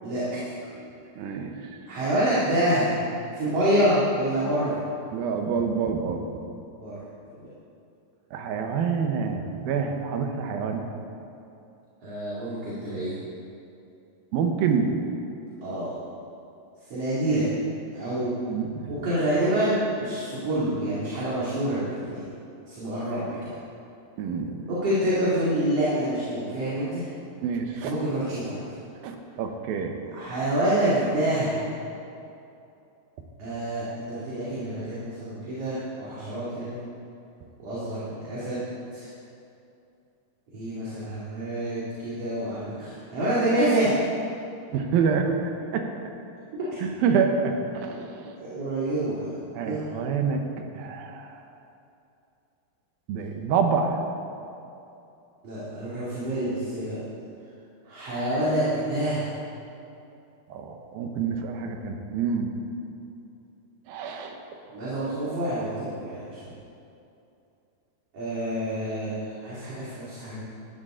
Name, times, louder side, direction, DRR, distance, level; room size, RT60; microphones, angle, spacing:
voice 1, 0.0-0.4 1.9-2.9 3.3-4.8 6.8-7.0 7.4-7.5 12.0-13.1 15.6-16.0 16.9-17.5 17.9-18.3 18.9-22.3 22.7-23.5 24.7-27.1 27.8-28.6 30.1-31.7 33.4-36.8 37.6-38.6 38.9-39.1 40.5-43.9 48.4-49.3 49.6-49.8 55.4-57.0 57.8-59.3 64.6-66.5 68.1-70.4, right 1 dB, 45° right, -10 dB, 3.1 m, -27 dB
voice 2, 0.8-1.8 5.1-6.4 8.3-10.8 14.3-14.9 18.5-18.9 24.2-24.7 27.4-27.9 29.0-29.9 44.7-45.9 46.8-48.3 49.5-50.4 50.7-51.4 53.1-54.0 60.5-62.5 63.9-64.4, right 6 dB, 70° right, 4 dB, 2.6 m, -27 dB
16.5 x 12.5 x 3.8 m, 2.7 s
omnidirectional pair, 4.6 m